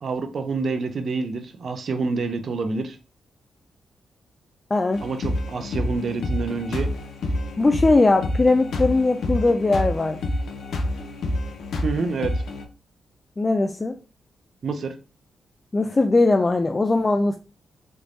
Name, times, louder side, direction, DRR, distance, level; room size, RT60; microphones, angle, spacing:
voice 1, 0.0-3.0 5.0-6.9 11.8-12.3 14.6-14.9, right 4 dB, 60° right, 0.6 m, -27 dB
voice 2, 4.7-5.0 7.6-10.2 13.4-14.0 15.7-17.4, left 3 dB, 30° left, 0.3 m, -20 dB
sound 1, 4.9-12.7, left 1 dB, 75° left, 0.6 m, -28 dB
3.3 x 3.1 x 2.6 m
cardioid pair, 70°, 0 cm